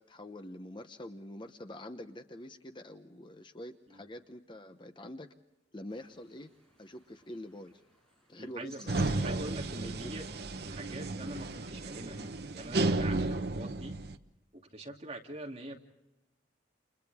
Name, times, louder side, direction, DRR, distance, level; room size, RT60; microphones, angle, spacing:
voice 1, 0.0-5.3 5.7-6.5 6.8-7.8 8.3-10.2, left 1 dB, 25° left, 8 dB, 0.9 m, -46 dB
sound 1, 5.9-12.1, equal, 5° left, 6.1 m, -58 dB
voice 2, 8.4-8.9 9.2-10.2 10.7-12.2 12.5-14.0 14.5-15.8, right 1 dB, 35° right, 0 dB, 2.8 m, -44 dB
sound 2, 8.9-14.2, right 2 dB, 60° right, 1.0 m, -33 dB
29.5 x 29.0 x 3.6 m, 0.96 s
head